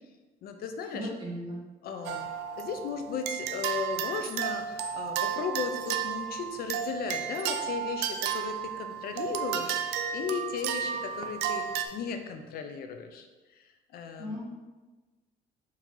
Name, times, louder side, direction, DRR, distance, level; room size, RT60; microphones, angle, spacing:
voice 1, 0.4-1.1 1.8-2.3 2.6-11.6 11.9-13.3 13.6-13.7 13.9-14.4, left 6 dB, 65° left, 6 dB, 0.5 m, -36 dB
voice 2, 0.9-1.6 14.2-14.4, equal, 25° right, -6 dB, 1.4 m, -36 dB
sound 1, 2.1-11.9, right 9 dB, 90° right, 0.4 m, -33 dB
4.6 x 2.9 x 3.8 m, 1.2 s
cardioid pair, 110°, 17 cm